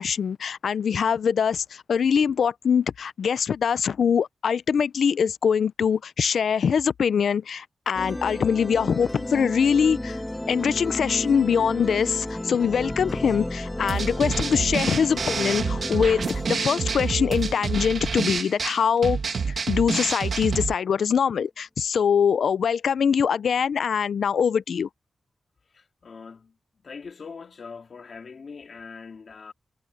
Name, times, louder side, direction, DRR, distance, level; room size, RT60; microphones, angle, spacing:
voice 1, 0.0-24.9, left 7 dB, 85° left, 0.5 m, -23 dB
sound 1, 7.9-19.4, left 1 dB, 10° left, 1.3 m, -33 dB
sound 2, 13.9-20.7, right 5 dB, 60° right, 1.2 m, -28 dB
voice 2, 25.7-26.5 26.8-29.5, left 5 dB, 55° left, 2.5 m, -42 dB
wide cardioid pair, 145°, 0 cm